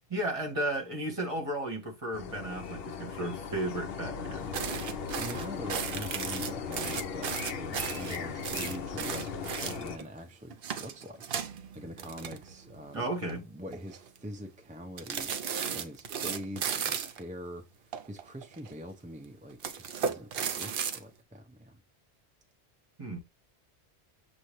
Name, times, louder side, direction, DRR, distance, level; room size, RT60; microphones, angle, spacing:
voice 1, 0.1-4.5 12.9-13.4 23.0-23.2, right 1 dB, 30° right, 1.3 m, -34 dB
sound 1, 2.1-10.0, left 6 dB, 65° left, 0.8 m, -38 dB
sound 2, 4.5-10.1 10.5-12.8 13.1-13.3 13.7-14.2 15.0-17.2 17.9-18.7 19.5-21.0, right 7 dB, 60° right, 0.8 m, -35 dB
voice 2, 5.2-9.3 9.6-21.8, equal, 10° right, 0.4 m, -44 dB
6.6 x 2.5 x 3.0 m
omnidirectional pair, 1.2 m